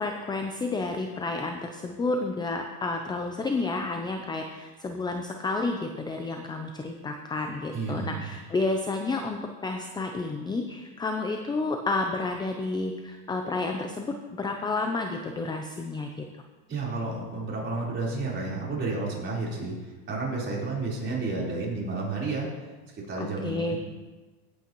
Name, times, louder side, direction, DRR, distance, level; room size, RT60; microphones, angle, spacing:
voice 1, 0.0-16.3 23.2-23.8, left 3 dB, 10° left, 4 dB, 0.5 m, -30 dB
voice 2, 7.7-8.2 16.7-22.5 23.0-23.8, right 3 dB, 25° right, -5 dB, 4.0 m, -31 dB
16.5 x 8.5 x 3.0 m, 1.3 s
supercardioid pair, 120°, 46 cm